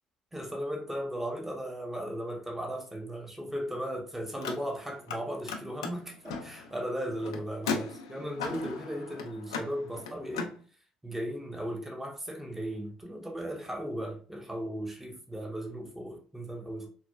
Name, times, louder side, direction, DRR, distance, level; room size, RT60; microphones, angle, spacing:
voice 1, 0.3-10.6 11.0-16.9, equal, 10° right, 0.7 m, -36 dB
Car, 4.3-5.2 5.4-10.5, left 4 dB, 90° left, 0.4 m, -37 dB
3.9 x 2.1 x 2.2 m
hypercardioid pair, 55°, 3 cm